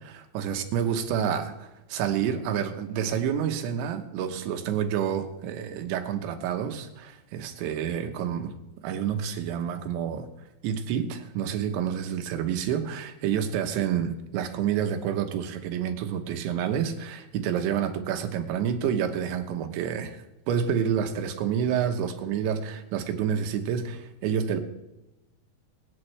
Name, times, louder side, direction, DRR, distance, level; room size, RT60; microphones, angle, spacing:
voice 1, 0.0-8.5 8.8-10.3 10.6-24.6, right 8 dB, 90° right, 3.4 m, -29 dB
25.5 x 8.9 x 3.3 m
omnidirectional pair, 5.1 m